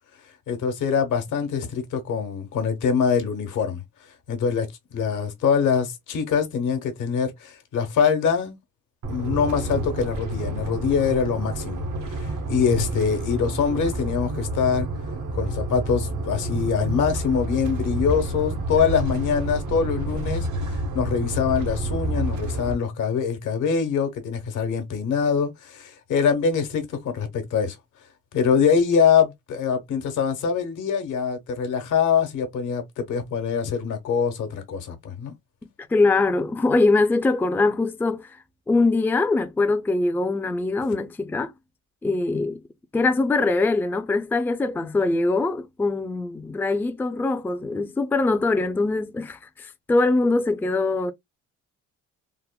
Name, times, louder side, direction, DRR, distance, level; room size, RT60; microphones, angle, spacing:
voice 1, 0.5-3.8 4.3-8.6 9.1-14.9 15.3-27.8 28.3-35.3, left 6 dB, 85° left, 1.1 m, -24 dB
sound 1, 9.0-22.7, right 2 dB, 85° right, 0.9 m, -29 dB
voice 2, 35.9-38.4 38.7-41.5 42.0-42.6 42.9-51.1, left 3 dB, 5° left, 0.3 m, -22 dB
3.5 x 2.1 x 2.2 m
cardioid pair, 90°, 30 cm